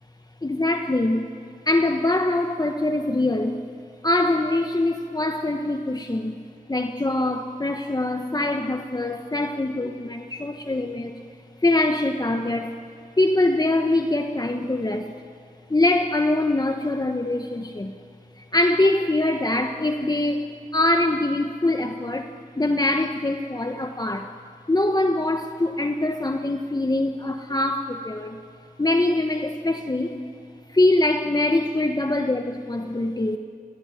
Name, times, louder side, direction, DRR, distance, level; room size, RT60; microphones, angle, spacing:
voice 1, 0.4-1.3 1.7-3.6 4.0-6.4 6.7-11.1 11.6-12.7 13.2-15.1 15.7-17.9 18.4-22.3 22.6-24.4 24.7-28.4 28.8-30.2 30.7-33.4, left 2 dB, 25° left, 6 dB, 1.2 m, -23 dB
26.0 x 18.5 x 9.1 m, 2.3 s
cardioid pair, 55°, 15 cm